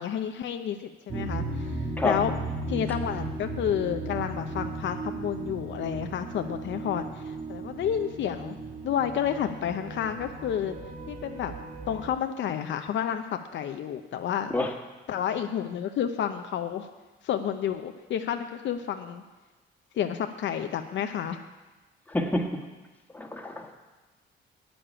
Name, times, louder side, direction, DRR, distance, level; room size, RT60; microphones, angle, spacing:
voice 1, 0.0-2.3 2.7-8.5 8.8-10.8 11.1-11.5 11.9-13.3 13.5-14.5 15.1-16.9 17.2-19.2 20.0-21.4, left 9 dB, 70° left, 7 dB, 0.7 m, -30 dB
sound 1, 1.1-12.1, right 2 dB, 40° right, 1.5 m, -36 dB
voice 2, 22.1-22.5 23.1-23.7, left 2 dB, 10° left, 2 dB, 1.5 m, -28 dB
8.6 x 7.0 x 8.7 m, 1.2 s
cardioid pair, 90°, 20 cm